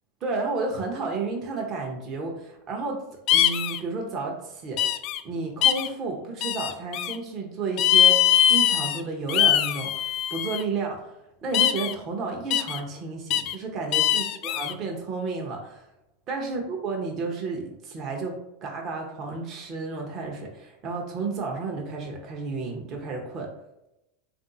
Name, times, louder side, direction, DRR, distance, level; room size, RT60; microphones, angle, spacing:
voice 1, 0.2-3.0 3.3-4.9 5.2-15.9 16.3-23.5, right 3 dB, 40° right, 0 dB, 0.8 m, -32 dB
sound 1, 3.3-3.8 4.8-5.2 5.6-5.9 6.4-7.1 7.8-9.0 9.3-10.6 11.5-11.9 12.5-12.8 13.3-13.5 13.9-14.7, left 11 dB, 50° left, 0.3 m, -22 dB
3.6 x 2.6 x 3.9 m, 0.89 s
hypercardioid pair, 90°, 0 cm